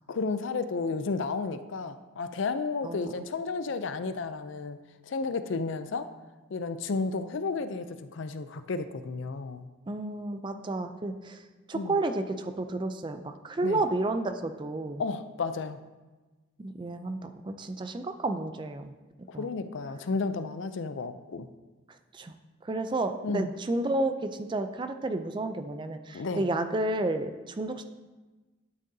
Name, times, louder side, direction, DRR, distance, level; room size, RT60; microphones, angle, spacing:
voice 1, 0.1-4.8 5.1-6.1 6.5-9.6 11.7-11.9 13.6-13.8 15.0-15.8 19.4-21.5 23.2-23.5 26.1-26.5, left 4 dB, 70° left, 11 dB, 0.4 m, -32 dB
voice 2, 9.9-11.4 11.7-15.0 16.6-18.9 19.3-19.5 21.9-22.3 22.6-27.8, right 2 dB, 25° right, 8 dB, 0.4 m, -31 dB
11.5 x 6.5 x 2.7 m, 1.2 s
head